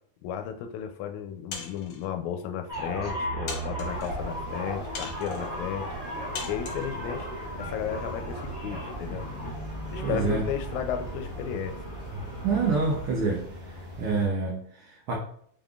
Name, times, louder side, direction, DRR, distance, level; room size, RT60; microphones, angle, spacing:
voice 1, 0.2-5.9 6.5-7.3 7.6-9.3 9.9-11.8, left 9 dB, 85° left, 8 dB, 2.0 m, -34 dB
sound 1, 1.5-2.1 2.8-2.9 3.5-4.1 4.9-5.5 6.3-6.9, left 5 dB, 70° left, 2.1 m, -39 dB
sound 2, 2.7-13.1, right 1 dB, 10° right, 1.2 m, -36 dB
sound 3, 3.8-14.3, equal, 60° right, 2.7 m, -43 dB
voice 2, 10.0-10.5 12.1-13.5 14.0-15.1, right 4 dB, 85° right, -2 dB, 1.2 m, -27 dB
5.2 x 3.6 x 2.4 m, 0.66 s
omnidirectional pair, 3.3 m